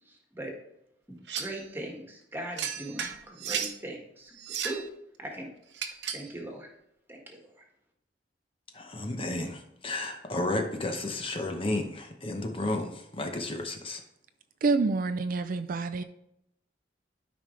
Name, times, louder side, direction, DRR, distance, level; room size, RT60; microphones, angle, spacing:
voice 1, 0.1-0.5 1.1-4.9 5.2-5.5 6.1-6.7 7.1-7.6, right 1 dB, 15° right, 0 dB, 1.7 m, -40 dB
sound 1, 1.3-1.6 2.6-3.8 4.4-4.9 5.7-6.3, right 7 dB, 75° right, 0.8 m, -34 dB
voice 2, 8.7-14.0, left 2 dB, 30° left, 4 dB, 0.9 m, -32 dB
voice 3, 14.6-16.0, right 3 dB, 50° right, 10 dB, 0.4 m, -27 dB
12.5 x 5.2 x 3.2 m, 0.79 s
head